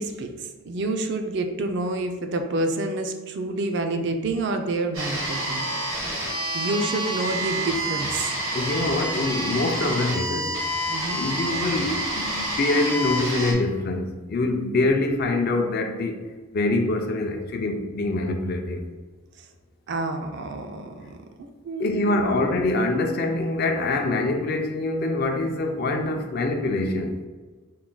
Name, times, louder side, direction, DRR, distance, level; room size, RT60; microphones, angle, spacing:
voice 1, 0.0-5.7 6.5-8.3 10.9-11.2 19.9-22.4, right 2 dB, 55° right, 5 dB, 0.4 m, -28 dB
sound 1, 4.9-13.5, right 1 dB, 80° right, 1.4 m, -28 dB
voice 2, 8.5-10.5 11.1-16.2 16.5-18.8 21.8-27.2, left 2 dB, 45° left, 4 dB, 0.4 m, -25 dB
4.6 x 2.2 x 3.8 m, 1.4 s
head